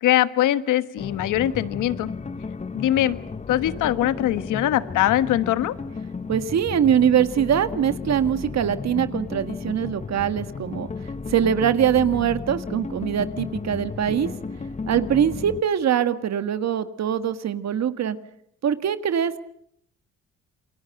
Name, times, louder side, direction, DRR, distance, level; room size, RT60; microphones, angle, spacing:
voice 1, 0.0-2.1 2.7-3.2 3.5-5.7, left 13 dB, 85° left, 13 dB, 1.4 m, -22 dB
sound 1, 1.0-15.6, left 4 dB, 25° left, 1.0 m, -34 dB
voice 2, 6.3-10.9 11.3-14.3 14.9-18.2 18.6-19.4, right 9 dB, 60° right, 11 dB, 1.7 m, -22 dB
28.0 x 23.0 x 7.8 m, 0.71 s
cardioid pair, 90°, 30 cm